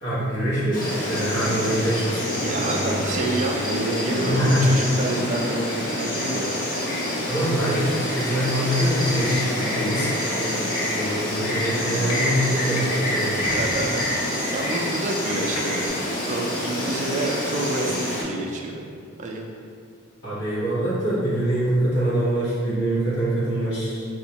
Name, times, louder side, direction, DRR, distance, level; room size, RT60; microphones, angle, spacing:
voice 1, 0.0-3.0 4.2-4.7 7.3-13.5 20.2-24.1, equal, 55° left, -11 dB, 1.3 m, -24 dB
Insect, 0.7-18.2, left 1 dB, 40° left, 0.6 m, -27 dB
voice 2, 2.4-6.5 13.4-16.0 16.3-18.9 19.2-19.5, right 2 dB, 35° right, 0 dB, 0.3 m, -28 dB
sound 1, 11.4-11.5 12.0-12.2 12.7-12.9 13.4-13.5 14.7-14.8 15.0-15.1 15.5-15.9, left 3 dB, 85° left, 0.5 m, -36 dB
3.5 x 2.4 x 2.9 m, 2.3 s
head